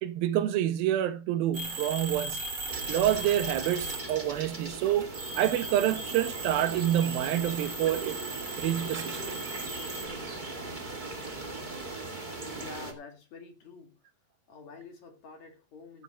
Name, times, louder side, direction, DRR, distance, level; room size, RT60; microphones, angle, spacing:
voice 1, 0.0-2.4 2.9-8.2 8.6-9.4, right 12 dB, 80° right, 2.7 m, -28 dB
sound 1, 1.5-4.4 4.9-10.1, right 3 dB, 40° right, 2.7 m, -38 dB
sound 2, 2.7-12.9, right 2 dB, 20° right, 1.3 m, -39 dB
voice 2, 12.4-14.0 14.5-16.0, left 4 dB, 55° left, 3.0 m, -47 dB
16.0 x 9.3 x 3.0 m
omnidirectional pair, 4.2 m